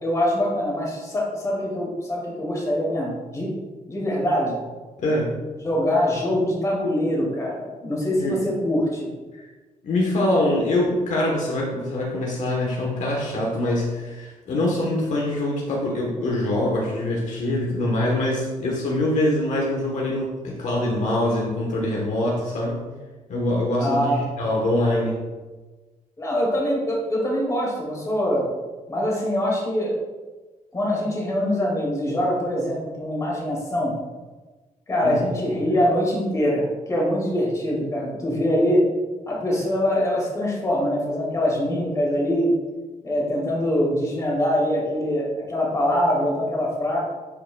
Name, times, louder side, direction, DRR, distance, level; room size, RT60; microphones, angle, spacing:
voice 1, 0.0-3.5 3.9-4.6 5.6-9.1 23.8-24.2 26.2-28.5 28.9-30.0 30.7-34.0 34.9-38.8 39.3-42.5 43.0-47.0, equal, 25° left, -4 dB, 2.2 m, -23 dB
voice 2, 5.0-5.4 8.2-8.3 9.8-22.8 23.3-25.2 35.0-35.2, left 1 dB, 60° left, -2 dB, 1.2 m, -24 dB
11.0 x 5.0 x 2.3 m, 1.3 s
wide cardioid pair, 160°, 14 cm